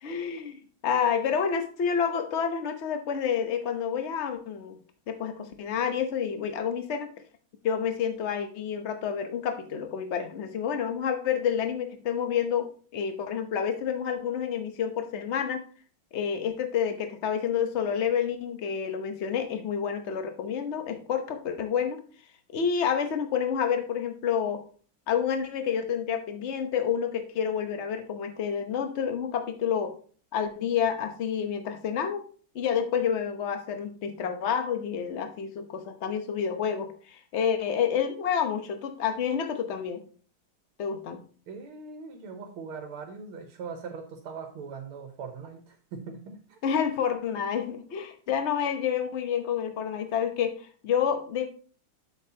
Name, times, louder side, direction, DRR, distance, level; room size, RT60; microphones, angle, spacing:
voice 1, 0.0-4.8 5.1-7.1 7.6-15.6 16.1-22.0 22.5-24.6 25.1-29.9 30.3-32.2 32.5-40.0 40.8-41.2 46.6-51.5, left 7 dB, 45° left, 7 dB, 0.9 m, -29 dB
voice 2, 41.5-46.8, right 5 dB, 90° right, 4 dB, 2.0 m, -41 dB
8.2 x 7.6 x 2.8 m, 0.41 s
omnidirectional pair, 2.3 m